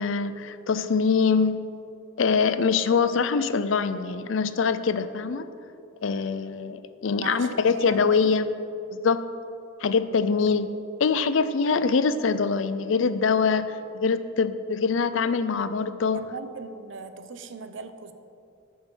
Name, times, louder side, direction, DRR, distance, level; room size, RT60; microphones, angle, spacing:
voice 1, 0.0-1.7 2.2-5.5 6.0-8.5 8.9-9.2 9.8-10.7 11.0-16.2, left 5 dB, 70° left, 13 dB, 0.5 m, -24 dB
voice 2, 7.2-8.1 16.1-18.1, right 4 dB, 65° right, 10 dB, 0.7 m, -38 dB
13.5 x 5.5 x 6.1 m, 2.6 s
head